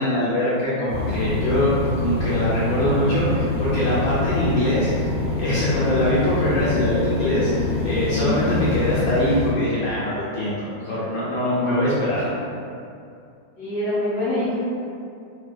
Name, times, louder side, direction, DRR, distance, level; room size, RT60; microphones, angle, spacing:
voice 1, 0.0-4.9 5.4-7.5 7.8-12.2, left 1 dB, 75° left, -9 dB, 1.2 m, -22 dB
sound 1, 0.9-9.5, left 3 dB, 85° right, 0.6 m, -26 dB
voice 2, 8.1-8.5 11.8-11.9 13.6-14.6, left 1 dB, 40° left, -9 dB, 1.0 m, -25 dB
3.3 x 2.7 x 2.2 m, 2.5 s
omnidirectional pair, 2.3 m